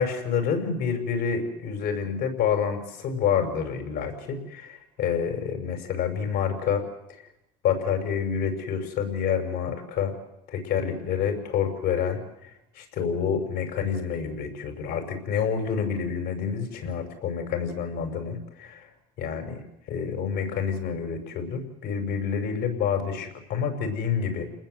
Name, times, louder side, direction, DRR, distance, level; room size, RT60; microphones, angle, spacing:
voice 1, 0.0-6.9 7.6-10.1 10.5-12.5 12.7-18.9 19.2-19.6 19.9-24.5, left 7 dB, 65° left, 7 dB, 5.9 m, -28 dB
30.0 x 20.0 x 8.0 m, 0.88 s
supercardioid pair, 95°, 18 cm